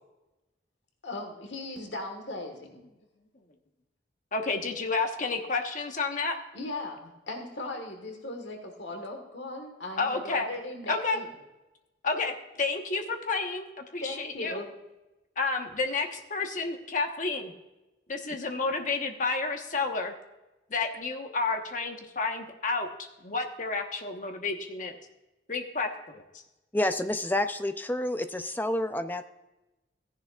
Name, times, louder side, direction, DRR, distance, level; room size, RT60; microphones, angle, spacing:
voice 1, 1.0-2.8 6.5-11.3 14.0-14.7, left 2 dB, 75° left, 4 dB, 1.5 m, -38 dB
voice 2, 4.3-6.4 10.0-10.5 10.9-11.2 12.0-14.6 15.4-17.5 18.1-20.1 20.7-25.0 25.5-26.2, left 4 dB, 45° left, 4 dB, 1.2 m, -30 dB
voice 3, 26.7-29.3, left 1 dB, 10° left, 9 dB, 0.5 m, -29 dB
15.5 x 10.5 x 2.4 m, 1.0 s
head